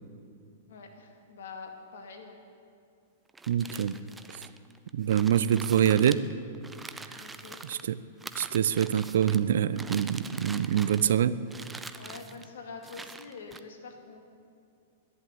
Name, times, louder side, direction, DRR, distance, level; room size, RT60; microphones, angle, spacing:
voice 1, 0.7-2.4 7.2-7.6 12.0-14.2, left 4 dB, 70° left, 3 dB, 2.2 m, -45 dB
sound 1, 3.3-7.8 8.2-9.4 9.7-11.2 11.5-12.5 12.8-13.6, right 3 dB, 10° right, 0.6 m, -44 dB
voice 2, 3.5-4.0 4.9-6.2 7.7-8.0 8.4-11.4, right 9 dB, 70° right, 16 dB, 0.5 m, -25 dB
11.0 x 11.0 x 9.4 m, 2.4 s
hypercardioid pair, 115°, 0 cm